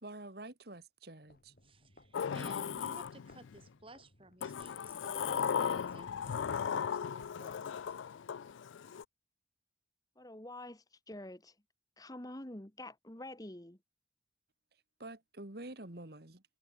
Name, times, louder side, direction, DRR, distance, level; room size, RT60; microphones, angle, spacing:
voice 1, 0.0-1.5 15.0-16.4, right 2 dB, 55° right, 2.1 m, -47 dB
sound 1, 1.2-8.6, left 1 dB, 50° left, 6.7 m, -65 dB
voice 2, 1.6-7.6, right 2 dB, 30° right, 4.3 m, -55 dB
Sliding door, 2.1-3.6 4.4-9.0, left 7 dB, 90° left, 0.4 m, -37 dB
voice 3, 10.2-11.5 12.0-13.8, left 1 dB, 20° left, 1.5 m, -47 dB
head